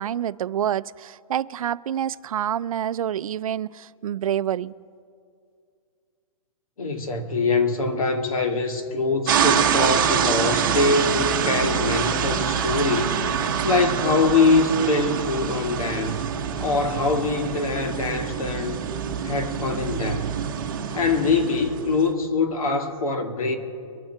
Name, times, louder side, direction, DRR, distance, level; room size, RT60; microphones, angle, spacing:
voice 1, 0.0-4.7, right 10 dB, 85° right, 0.4 m, -27 dB
voice 2, 6.8-13.2 13.6-16.3 16.6-18.8 19.2-20.3 20.9-23.6, left 3 dB, 85° left, 2.1 m, -23 dB
sound 1, 9.3-22.1, right 8 dB, 40° right, 1.0 m, -25 dB
23.5 x 7.9 x 4.6 m
hypercardioid pair, 175°, 18 cm